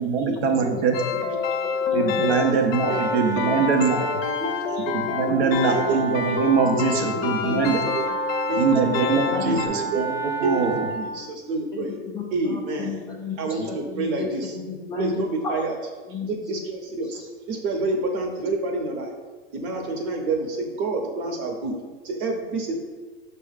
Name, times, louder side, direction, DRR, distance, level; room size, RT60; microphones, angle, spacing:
voice 1, 0.0-1.2 1.9-4.0 4.8-7.8 8.6-10.9, right 5 dB, 70° right, 4 dB, 0.7 m, -23 dB
sound 1, 0.9-9.7, left 5 dB, 60° left, 0.5 m, -27 dB
voice 2, 1.3-1.9 2.9-3.1 3.4-3.5 3.9-4.0 4.4-5.0 5.4-6.0 6.9-7.1 7.5-8.1 8.5-9.1 9.4-10.1 10.4-12.0 12.3-13.0 13.4-14.5 15.0-15.8 16.1-17.2 17.5-19.1 19.5-21.8 22.0-22.8, right 2 dB, 55° right, 2 dB, 1.0 m, -29 dB
voice 3, 1.9-2.3 5.2-5.6 6.5-6.8 7.1-7.7 9.3-9.5 11.7-15.5 16.1-16.3, left 5 dB, 10° left, -4 dB, 0.3 m, -33 dB
Wind instrument woodwind instrument, 2.2-11.3, right 4 dB, 5° right, 0.7 m, -32 dB
6.1 x 2.3 x 3.4 m, 1.3 s
hypercardioid pair, 110°, 34 cm